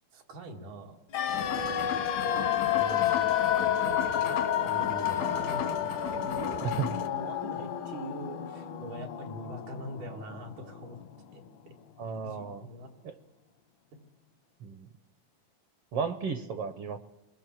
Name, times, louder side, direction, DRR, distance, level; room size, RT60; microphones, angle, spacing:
voice 1, 0.1-1.0 1.6-2.1 2.6-3.5 4.5-11.0 11.3-11.7 12.2-13.0, right 1 dB, 90° right, 0 dB, 3.8 m, -43 dB
sound 1, 1.1-11.1 11.3-11.4, left 10 dB, 70° left, 1.2 m, -30 dB
sound 2, 1.3-7.1, left 7 dB, 90° left, 2.9 m, -38 dB
voice 2, 12.0-12.7 13.0-13.1 14.6-14.9 15.9-17.0, right 6 dB, 65° right, 10 dB, 1.6 m, -34 dB
28.5 x 20.0 x 7.6 m, 0.99 s
omnidirectional pair, 3.4 m